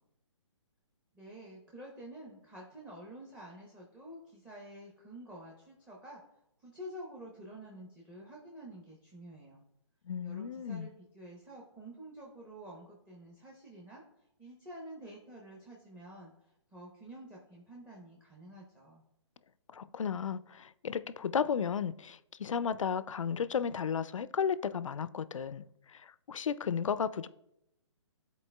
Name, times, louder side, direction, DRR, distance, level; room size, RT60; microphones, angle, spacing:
voice 1, 1.1-6.2 6.6-9.6 10.2-14.0 14.4-19.0, right 1 dB, 5° right, 0.8 m, -49 dB
voice 2, 10.1-10.9 19.7-27.3, left 7 dB, 90° left, 0.4 m, -34 dB
11.0 x 4.2 x 2.2 m
hypercardioid pair, 145°, 16 cm